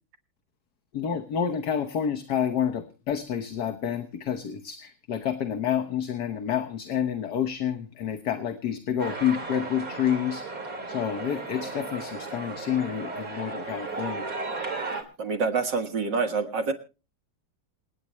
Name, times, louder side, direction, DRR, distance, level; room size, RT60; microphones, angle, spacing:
voice 1, 0.9-10.6 10.9-14.2, left 9 dB, 55° left, 7 dB, 1.5 m, -29 dB
sound 1, 9.0-15.0, right 3 dB, 40° right, 3.1 m, -35 dB
voice 2, 15.2-16.7, right 4 dB, 60° right, 7 dB, 2.2 m, -26 dB
27.5 x 9.5 x 3.1 m, 0.33 s
omnidirectional pair, 2.3 m